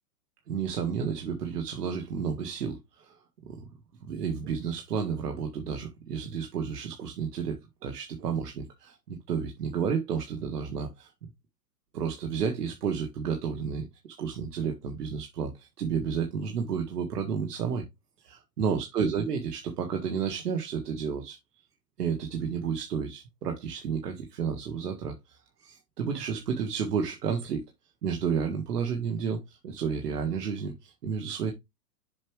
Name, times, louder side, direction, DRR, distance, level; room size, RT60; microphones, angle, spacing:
voice 1, 0.5-3.2 3.5-3.7 4.0-11.1 11.9-17.8 18.2-21.4 22.0-27.6 28.0-31.5, right 6 dB, 70° right, 1.7 m, -31 dB
7.3 x 4.8 x 3.2 m
hypercardioid pair, 180°, 49 cm